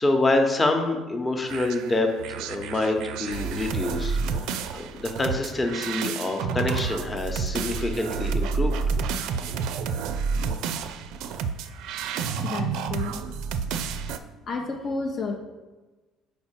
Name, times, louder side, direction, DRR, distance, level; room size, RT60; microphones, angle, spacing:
voice 1, 0.0-4.2 4.7-8.7, left 2 dB, 20° left, 4 dB, 0.9 m, -26 dB
sound 1, 1.5-14.2, right 5 dB, 75° right, 0.4 m, -29 dB
voice 2, 12.4-13.2 14.5-15.4, left 3 dB, 50° left, 2 dB, 0.6 m, -31 dB
4.5 x 4.2 x 5.7 m, 1.2 s
supercardioid pair, 95°, 0 cm